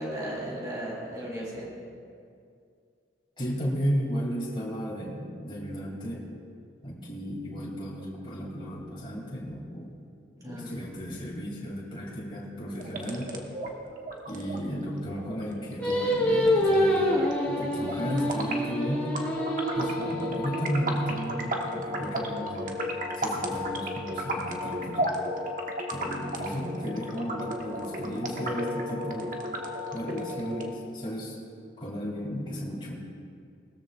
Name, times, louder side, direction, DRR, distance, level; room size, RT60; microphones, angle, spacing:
voice 1, 0.0-1.7 10.4-10.8, right 1 dB, 20° right, -5 dB, 3.6 m, -35 dB
voice 2, 3.4-6.2 6.8-9.9 10.5-13.3 14.3-17.1 17.5-19.1 19.7-22.8 23.2-25.1 25.9-29.4 29.9-31.4 31.8-32.9, equal, 25° left, -5 dB, 2.8 m, -34 dB
sound 1, 12.7-30.7, equal, 45° right, 1.3 m, -34 dB
Singing, 15.8-21.1, equal, 10° left, 2.8 m, -27 dB
20.0 x 14.0 x 2.5 m, 2.4 s
head